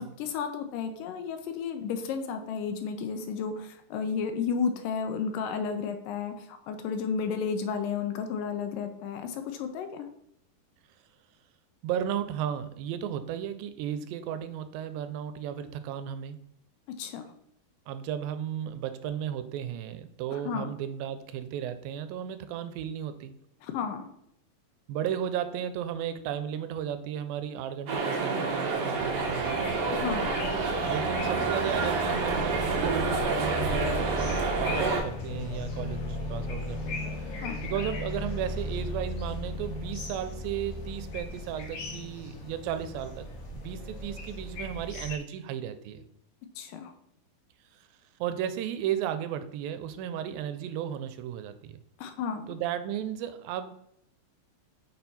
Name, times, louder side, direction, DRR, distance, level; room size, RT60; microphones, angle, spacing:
voice 1, 0.0-10.1 16.9-17.2 20.3-20.7 23.6-24.1 29.9-30.3 37.4-37.6 46.6-46.9 52.0-52.5, left 6 dB, 80° left, 7 dB, 2.2 m, -33 dB
voice 2, 11.8-16.4 17.9-23.4 24.9-29.7 30.8-37.0 37.6-46.0 48.2-51.8 52.5-53.7, right 9 dB, 90° right, 10 dB, 2.4 m, -34 dB
sound 1, 27.9-35.0, right 4 dB, 65° right, 1.7 m, -28 dB
sound 2, 28.9-45.2, left 1 dB, 60° left, 1.5 m, -36 dB
6.3 x 4.3 x 4.1 m, 0.75 s
omnidirectional pair, 4.1 m